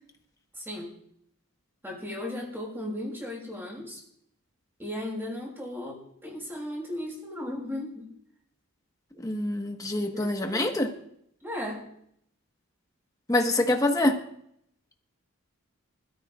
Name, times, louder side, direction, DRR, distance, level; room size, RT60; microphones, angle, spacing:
voice 1, 0.6-1.0 1.8-4.0 4.8-8.1 10.1-10.8 11.4-11.9, left 1 dB, 10° right, 6.0 m, -36 dB
voice 2, 9.2-10.9 13.3-14.2, left 1 dB, 15° left, 1.3 m, -25 dB
25.5 x 13.5 x 2.5 m
head